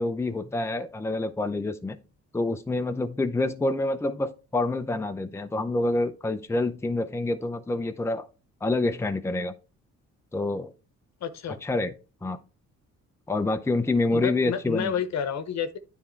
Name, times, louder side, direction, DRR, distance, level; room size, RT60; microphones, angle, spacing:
voice 1, 0.0-2.0 2.3-8.3 8.6-9.5 10.3-10.7 11.6-11.9 12.2-12.4 13.3-14.9, left 2 dB, 10° left, 0.6 m, -27 dB
voice 2, 11.2-11.6 14.1-15.8, left 8 dB, 60° left, 1.0 m, -30 dB
9.6 x 3.7 x 4.5 m
cardioid pair, 90°, 30 cm